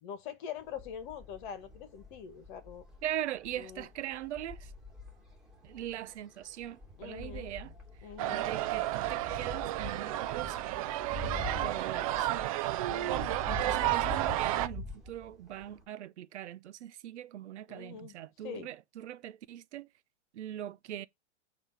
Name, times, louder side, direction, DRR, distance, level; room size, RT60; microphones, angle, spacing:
voice 1, 0.0-2.9 3.6-3.9 7.0-7.5 8.0-8.5 11.2-11.7 12.9-13.3 17.7-18.7, left 8 dB, 45° left, 1.8 m, -44 dB
sound 1, 0.6-15.8, left 1 dB, ahead, 2.8 m, -45 dB
voice 2, 3.0-4.7 5.6-7.7 8.3-10.8 11.6-12.5 13.5-19.9 20.3-21.1, right 12 dB, 80° right, 0.7 m, -41 dB
sound 2, 8.2-14.7, right 14 dB, 35° right, 0.4 m, -32 dB
8.1 x 3.1 x 6.0 m
supercardioid pair, 150°, 34 cm